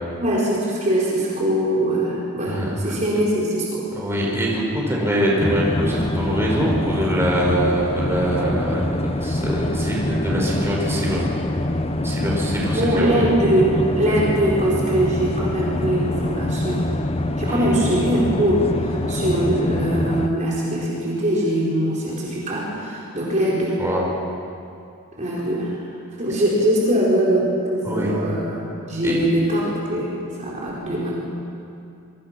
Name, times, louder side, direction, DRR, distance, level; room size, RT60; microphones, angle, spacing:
voice 1, 0.2-3.9 12.6-16.9 17.4-23.8 25.2-25.9 26.2-30.1 30.4-31.2, right 1 dB, 35° right, -5 dB, 4.6 m, -22 dB
voice 2, 4.0-11.3 12.0-13.1 17.5-17.8 23.8-24.1 27.8-28.2 29.0-29.2, equal, 10° right, -4 dB, 5.3 m, -23 dB
sound 1, 5.4-20.3, left 1 dB, 25° left, 1.0 m, -25 dB
26.5 x 24.0 x 6.1 m, 2.5 s
head